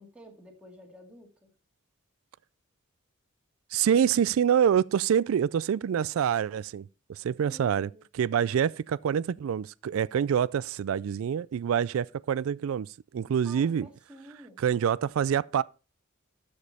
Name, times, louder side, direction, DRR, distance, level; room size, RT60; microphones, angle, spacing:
voice 1, 0.0-1.5 7.4-8.0 13.4-14.6, equal, 5° right, 2.1 m, -50 dB
voice 2, 3.7-13.9 14.6-15.6, right 8 dB, 80° right, 0.3 m, -26 dB
13.0 x 5.2 x 4.2 m
head